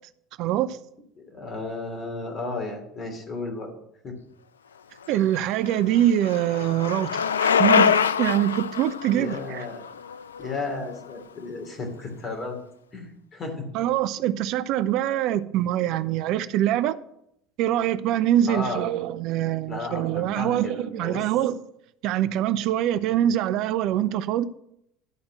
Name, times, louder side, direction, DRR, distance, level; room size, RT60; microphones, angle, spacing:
voice 1, 0.4-0.8 5.1-9.7 13.7-17.0 17.6-21.5 22.0-24.4, right 12 dB, 55° right, 0.5 m, -24 dB
voice 2, 1.2-3.7 4.0-4.1 9.1-9.8 10.4-12.6 12.9-13.7 17.9-18.0 18.5-18.8 19.7-21.2 23.1-23.2, left 3 dB, 35° left, 2.9 m, -33 dB
Bicycle, 5.1-11.1, left 7 dB, 80° left, 0.3 m, -25 dB
12.0 x 4.3 x 7.4 m
figure-of-eight pair, 70°, 0 cm